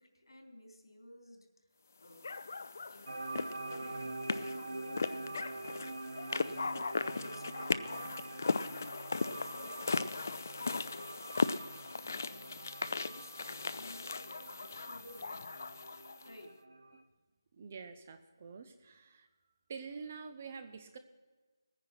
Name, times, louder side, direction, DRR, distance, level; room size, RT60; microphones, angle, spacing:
voice 1, 0.0-1.5 2.0-2.5 2.9-5.4 6.4-6.7 7.1-8.0 8.4-11.3 12.0-15.5 16.2-16.6, left 1 dB, 85° left, 3 dB, 3.6 m, -54 dB
sound 1, 2.2-16.3, left 4 dB, 35° left, 0.4 m, -38 dB
sound 2, 3.1-17.0, right 2 dB, 70° right, 1.3 m, -45 dB
voice 2, 17.5-19.3 19.7-21.0, right 5 dB, 20° right, 9 dB, 0.6 m, -47 dB
19.5 x 9.8 x 6.0 m, 1.3 s
figure-of-eight pair, 175°, 2 cm